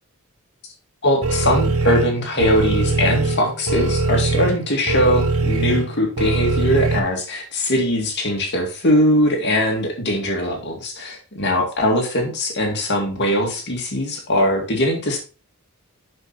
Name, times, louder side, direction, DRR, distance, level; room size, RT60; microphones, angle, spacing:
voice 1, 1.0-15.2, left 1 dB, 50° left, 1 dB, 2.2 m, -21 dB
sound 1, 1.2-7.0, right 3 dB, 75° right, 1.1 m, -21 dB
7.8 x 6.0 x 4.1 m, 0.34 s
head